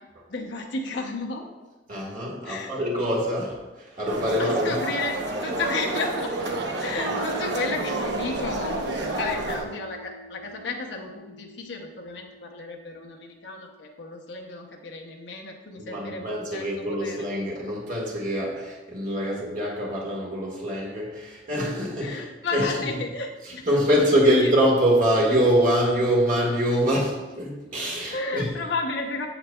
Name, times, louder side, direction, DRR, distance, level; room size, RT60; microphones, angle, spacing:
voice 1, 0.3-1.5 2.4-2.7 4.4-5.1 5.4-6.3 6.8-8.8 9.2-17.2 22.0-24.5 28.1-29.3, left 3 dB, 80° left, 1 dB, 0.8 m, -33 dB
voice 2, 1.9-4.8 15.7-22.2 22.5-22.8 23.4-28.5, equal, 50° right, -3 dB, 1.6 m, -24 dB
sound 1, 4.1-9.6, right 2 dB, 75° right, 0.9 m, -29 dB
Piano, 7.0-14.2, equal, 5° left, 0.5 m, -42 dB
7.8 x 7.7 x 2.3 m, 1.2 s
head